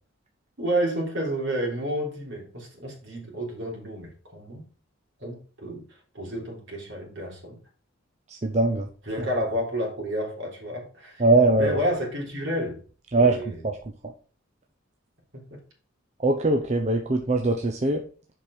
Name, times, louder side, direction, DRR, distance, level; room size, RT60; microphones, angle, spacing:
voice 1, 0.6-4.6 5.2-5.8 6.1-7.6 9.1-11.2 11.6-12.8 13.2-13.6 15.3-15.6, equal, 60° right, -1 dB, 3.6 m, -30 dB
voice 2, 8.3-8.9 11.2-11.8 13.1-13.8 16.2-18.0, right 2 dB, 35° right, 2 dB, 0.8 m, -21 dB
7.2 x 6.0 x 4.9 m, 0.38 s
head